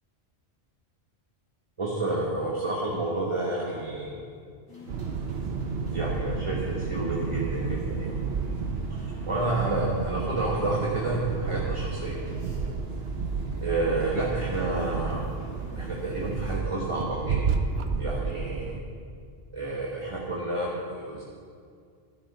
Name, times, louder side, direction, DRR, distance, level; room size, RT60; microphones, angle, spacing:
voice 1, 1.8-4.2 5.9-8.1 8.9-12.2 13.6-15.3 15.7-17.4 18.0-18.8 19.5-21.2, right 2 dB, 30° right, -4 dB, 1.3 m, -30 dB
sound 1, 4.7-16.6, equal, 20° left, 3.2 m, -46 dB
sound 2, 4.9-18.8, right 5 dB, 65° right, 1.0 m, -31 dB
13.0 x 9.7 x 5.5 m, 2.3 s
omnidirectional pair, 1.1 m